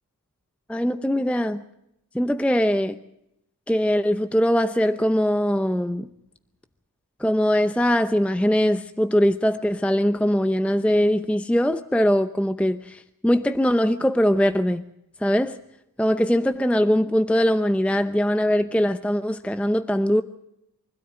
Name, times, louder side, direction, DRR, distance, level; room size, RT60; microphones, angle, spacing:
voice 1, 0.7-1.6 2.1-3.0 3.7-6.1 7.2-14.8 15.2-15.6 16.0-20.2, equal, 5° left, 11 dB, 0.7 m, -21 dB
24.5 x 13.0 x 8.9 m, 0.82 s
wide cardioid pair, 95°, 37 cm